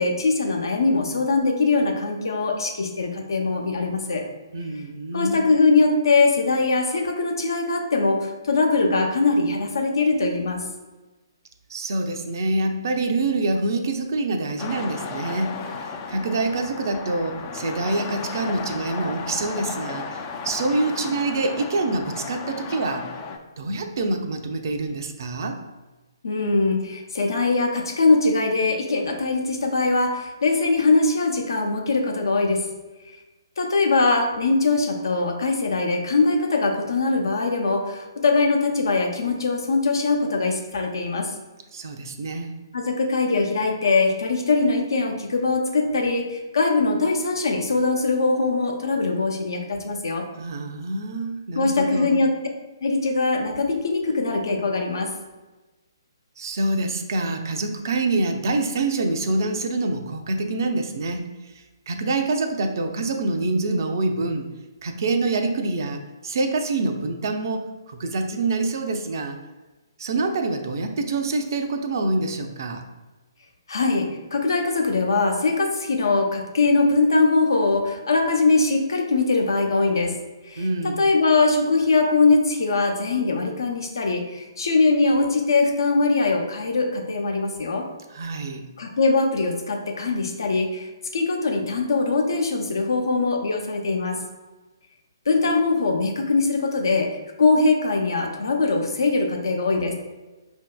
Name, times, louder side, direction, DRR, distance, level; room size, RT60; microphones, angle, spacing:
voice 1, 0.0-4.2 5.1-10.6 26.2-32.7 33.6-41.3 42.7-50.3 51.6-52.3 52.8-55.1 73.7-80.2 80.4-87.9 88.8-94.2 95.3-99.9, left 3 dB, 65° left, 3 dB, 0.7 m, -22 dB
voice 2, 4.5-5.5 11.7-23.1 23.6-25.6 41.7-42.5 50.4-52.2 56.4-64.5 64.8-69.4 70.0-72.8 80.6-81.0 88.1-88.7, right 2 dB, 50° right, 5 dB, 0.5 m, -26 dB
sound 1, 14.6-23.4, left 5 dB, 25° left, 0.3 m, -34 dB
5.5 x 2.6 x 2.2 m, 1.2 s
figure-of-eight pair, 135°, 2 cm